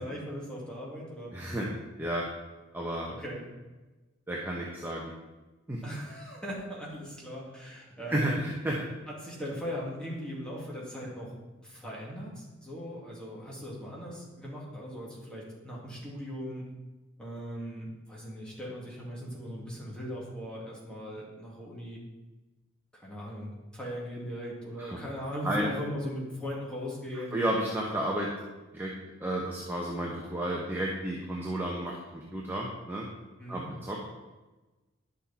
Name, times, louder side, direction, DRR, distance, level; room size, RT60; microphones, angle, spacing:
voice 1, 0.0-1.3 1.6-1.7 3.1-3.4 5.8-8.5 9.1-11.3 11.6-16.6 17.2-22.0 22.9-27.4 33.4-33.7, equal, 5° left, -5 dB, 2.2 m, -39 dB
voice 2, 1.3-1.7 2.0-2.3 2.7-3.1 4.3-5.1 5.7-5.8 8.1-8.8 24.8-25.0 25.4-25.7 27.3-28.3 28.7-28.9 29.2-33.1 33.5-34.0, right 1 dB, 10° right, -3 dB, 0.9 m, -32 dB
10.0 x 6.5 x 4.2 m, 1.2 s
head